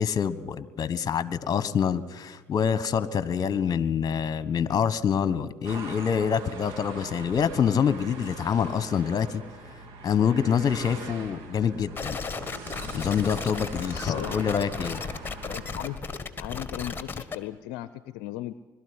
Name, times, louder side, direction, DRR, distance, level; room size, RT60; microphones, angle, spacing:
voice 1, 0.0-9.4 10.0-12.2 12.9-15.0, left 7 dB, 40° left, 15 dB, 1.3 m, -26 dB
sound 1, 5.6-16.0, right 4 dB, 65° right, 2.8 m, -42 dB
sound 2, 12.0-17.4, left 5 dB, 20° left, 1.7 m, -35 dB
voice 2, 13.8-14.4 15.5-16.0 16.4-18.5, left 15 dB, 70° left, 15 dB, 0.6 m, -37 dB
22.0 x 13.0 x 9.8 m, 1.3 s
hypercardioid pair, 65°, 10 cm